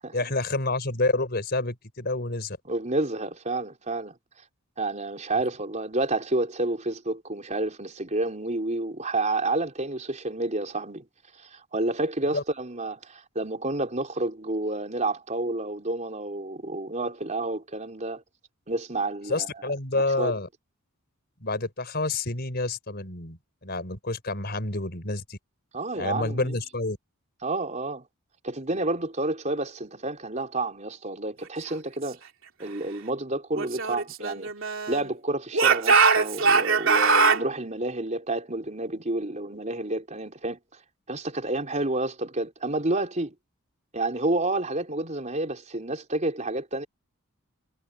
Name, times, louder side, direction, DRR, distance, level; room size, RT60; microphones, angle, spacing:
voice 1, 0.1-2.6 12.3-12.4 19.3-20.5 21.4-25.4 26.0-27.0, left 2 dB, 45° left, 4.5 m, -28 dB
voice 2, 2.7-4.2 4.8-11.1 11.4-18.2 18.7-19.5 19.9-20.3 25.7-26.6 27.4-28.0 28.4-32.2 32.6-34.5 34.9-40.6 41.1-43.3 43.9-46.9, right 2 dB, 35° right, 4.2 m, -29 dB
Speech / Shout, 33.6-35.1 35.5-37.4, right 4 dB, 65° right, 3.6 m, -21 dB
head